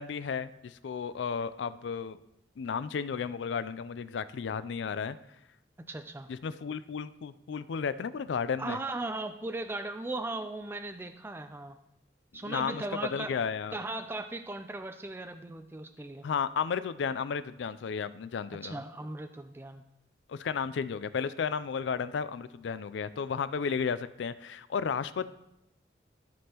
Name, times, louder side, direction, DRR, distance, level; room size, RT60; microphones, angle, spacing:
voice 1, 0.0-2.2 2.6-5.2 6.3-8.8 12.4-12.8 13.1-13.8 16.2-18.8 20.3-25.3, left 6 dB, 85° left, 15 dB, 0.4 m, -33 dB
voice 2, 5.9-6.3 8.6-11.8 12.3-13.3 13.7-16.3 18.5-19.8, right 2 dB, 10° right, 7 dB, 0.3 m, -37 dB
14.5 x 5.3 x 2.9 m, 0.85 s
head